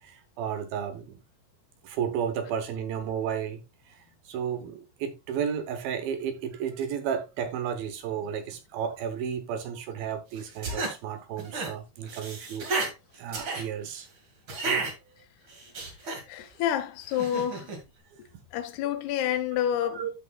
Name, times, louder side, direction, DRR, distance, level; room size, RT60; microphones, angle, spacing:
voice 1, 0.0-1.2 1.8-3.6 3.9-12.7 13.2-14.1 14.6-14.9 19.8-20.1, right 8 dB, 70° right, 2.5 m, -33 dB
sound 1, 10.4-10.9 11.4-11.7 12.0-12.9 13.3-13.6 14.5-14.9 15.5-16.2 17.1-17.8, right 3 dB, 40° right, 2.1 m, -32 dB
voice 2, 16.3-17.7 18.5-20.0, left 10 dB, 80° left, 2.7 m, -28 dB
13.5 x 6.0 x 2.3 m
omnidirectional pair, 4.8 m